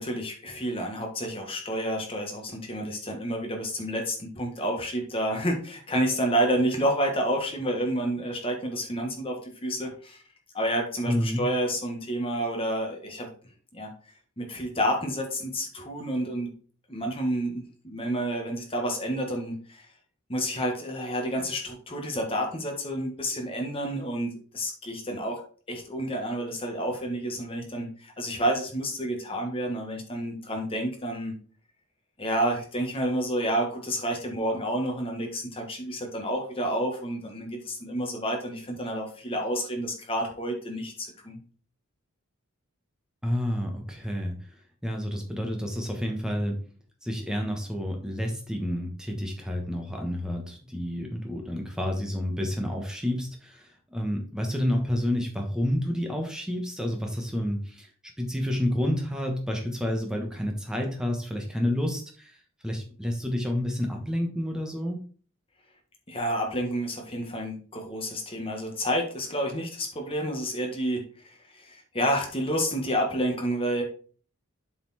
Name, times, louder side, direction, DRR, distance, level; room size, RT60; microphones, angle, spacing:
voice 1, 0.0-10.2 10.5-13.3 13.7-13.9 14.4-16.5 16.9-19.9 20.3-31.3 32.2-41.4 66.1-73.8, equal, 25° left, 2 dB, 1.5 m, -29 dB
voice 2, 11.1-11.4 43.2-44.3 44.8-46.6 47.0-57.9 58.2-62.3 62.6-65.0, left 1 dB, 5° right, 1 dB, 1.3 m, -29 dB
7.8 x 4.3 x 4.2 m, 0.42 s
head